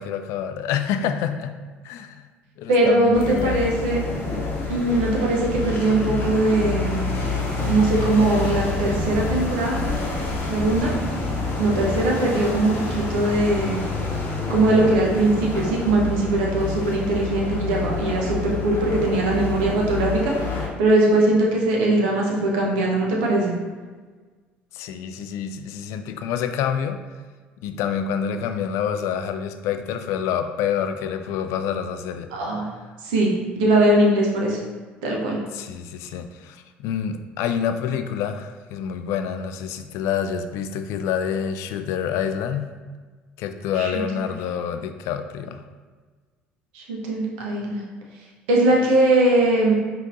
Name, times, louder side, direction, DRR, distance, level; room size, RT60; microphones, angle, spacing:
voice 1, 0.0-1.5 1.8-2.2 2.6-3.7 24.7-27.0 27.6-32.3 35.5-42.7 43.4-45.6, left 8 dB, 60° left, 8 dB, 0.3 m, -27 dB
voice 2, 2.7-4.0 4.7-7.1 7.7-10.0 10.5-10.9 11.6-13.8 14.5-23.6 32.3-32.7 33.0-34.6 35.0-35.4 43.8-44.2 46.7-47.8 48.5-49.7, right 2 dB, 70° right, -2 dB, 0.8 m, -21 dB
sound 1, 3.1-20.7, left 3 dB, 40° left, 0.9 m, -27 dB
5.0 x 2.8 x 2.6 m, 1.4 s
figure-of-eight pair, 60°, 6 cm